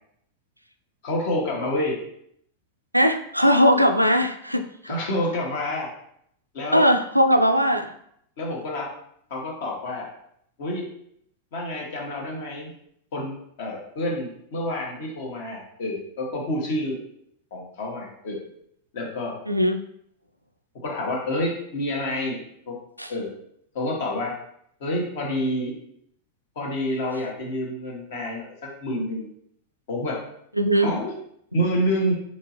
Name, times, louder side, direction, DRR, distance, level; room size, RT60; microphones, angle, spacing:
voice 1, 1.0-2.0 4.9-5.9 6.5-6.9 8.4-8.9 9.3-10.1 10.6-10.9 11.5-12.7 13.1-17.0 17.5-18.4 18.9-19.4 20.8-22.4 22.7-22.8 23.1-23.3 23.7-24.4 24.8-25.8 26.5-29.3 29.9-30.2 30.8-31.1 31.5-32.1, left 1 dB, 55° left, -1 dB, 1.2 m, -28 dB
voice 2, 2.9-4.9 6.7-7.9 19.5-19.8 23.0-23.1 30.6-30.9, equal, 90° right, 7 dB, 0.3 m, -19 dB
4.3 x 3.0 x 2.9 m, 0.71 s
figure-of-eight pair, 90°, 0 cm